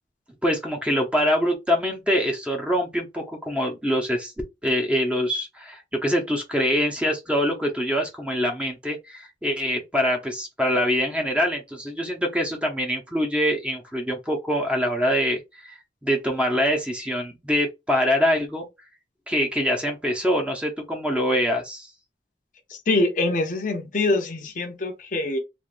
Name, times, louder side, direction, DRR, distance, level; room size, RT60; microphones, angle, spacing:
voice 1, 0.4-4.3 4.6-15.7 16.0-18.7 19.3-21.9, equal, 5° right, 0.7 m, -24 dB
voice 2, 22.7-25.4, left 2 dB, 45° left, 0.6 m, -24 dB
3.4 x 2.5 x 2.5 m
head